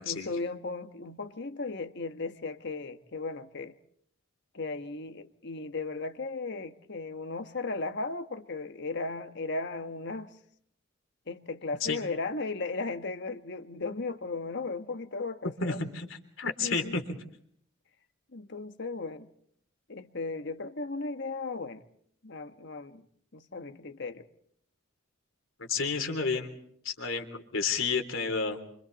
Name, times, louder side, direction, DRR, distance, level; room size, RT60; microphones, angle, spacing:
voice 1, 0.0-3.7 4.5-10.3 11.3-15.8 16.6-17.0 18.3-19.3 19.9-21.8 22.2-23.0 23.3-24.3, left 3 dB, 60° left, 1.4 m, -36 dB
voice 2, 15.6-17.0 25.6-26.5 26.8-28.6, left 4 dB, 75° left, 3.6 m, -31 dB
29.5 x 25.5 x 4.2 m
head